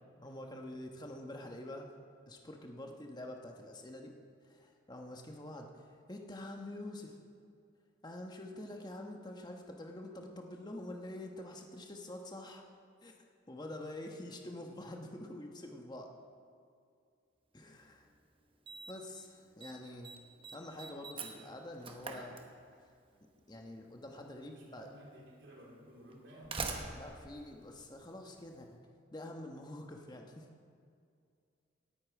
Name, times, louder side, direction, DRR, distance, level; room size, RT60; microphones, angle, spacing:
voice 1, 0.2-1.9 2.3-4.1 4.4-7.1 8.0-12.6 13.0-13.2 13.5-16.1 17.5-18.1 18.9-20.2 20.5-22.4 23.5-24.9 26.9-28.8 29.1-30.5, left 1 dB, 20° left, 2 dB, 1.1 m, -46 dB
voice 2, 13.7-14.0 24.5-26.6, equal, 70° right, -4 dB, 3.6 m, -55 dB
Slam, 17.8-17.9 18.7-19.1 19.4-19.7 20.0-23.0 24.1-24.2 25.1-25.2 26.1-28.5, right 4 dB, 30° right, 1.0 m, -44 dB
17.5 x 8.7 x 4.9 m, 2.3 s
head